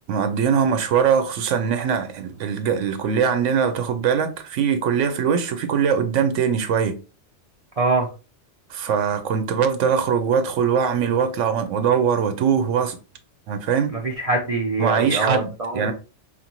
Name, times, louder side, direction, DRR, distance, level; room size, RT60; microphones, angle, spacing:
voice 1, 0.1-7.0 8.7-13.0 13.5-13.9 14.8-15.9, right 7 dB, 85° right, 1.0 m, -21 dB
voice 2, 7.8-8.1 13.9-15.9, right 3 dB, 45° right, 0.5 m, -23 dB
4.6 x 2.6 x 2.9 m
omnidirectional pair, 1.2 m